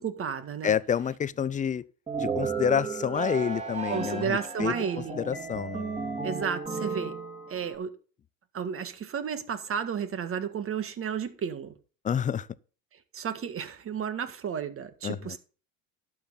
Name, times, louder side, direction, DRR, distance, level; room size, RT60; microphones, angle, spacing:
voice 1, 0.0-0.8 3.9-5.2 6.2-7.2 7.5-7.9 8.5-11.7 13.1-15.4, right 7 dB, 35° right, 1.8 m, -32 dB
voice 2, 0.6-1.8 2.2-4.7 5.2-5.8 12.0-12.5 15.0-15.4, left 8 dB, 20° left, 0.5 m, -28 dB
sound 1, 2.1-7.8, right 4 dB, 15° right, 4.3 m, -34 dB
11.5 x 7.7 x 4.0 m
hypercardioid pair, 85°, 39 cm